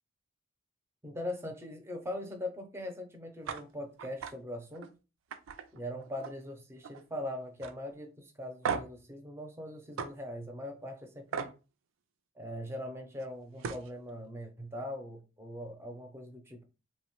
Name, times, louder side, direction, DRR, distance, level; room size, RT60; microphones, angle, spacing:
voice 1, 1.0-4.9 5.7-11.5 12.4-16.6, left 1 dB, 15° right, 0.4 m, -41 dB
sound 1, 3.4-3.6 4.0-4.3 4.7-4.9 5.3-6.5 6.8-7.2 7.6-7.7 8.6-9.0 10.0-10.1 11.3-11.5 13.2-13.3 13.6-13.9, right 6 dB, 85° right, 0.3 m, -36 dB
2.9 x 2.0 x 3.0 m
head